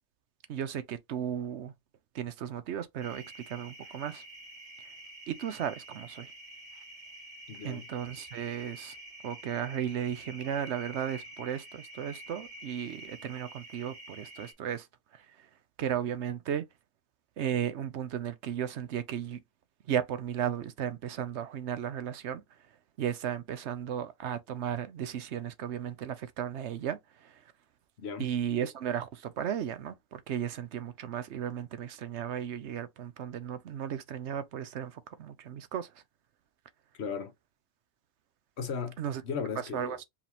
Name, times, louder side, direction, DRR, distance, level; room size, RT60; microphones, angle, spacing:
voice 1, 0.5-1.7 2.1-4.2 5.3-6.3 7.6-8.9 9.2-14.9 15.1-15.2 15.8-16.6 17.4-19.4 19.9-22.4 23.0-27.4 28.2-35.9 39.0-39.2 39.7-40.0, right 9 dB, 75° right, 1.0 m, -35 dB
sound 1, 3.0-14.5, right 1 dB, 40° right, 1.6 m, -48 dB
voice 2, 7.5-7.9 28.0-28.3 36.9-37.3 38.6-39.0 39.2-40.0, left 6 dB, 70° left, 1.1 m, -36 dB
4.8 x 3.4 x 3.0 m
omnidirectional pair, 1.2 m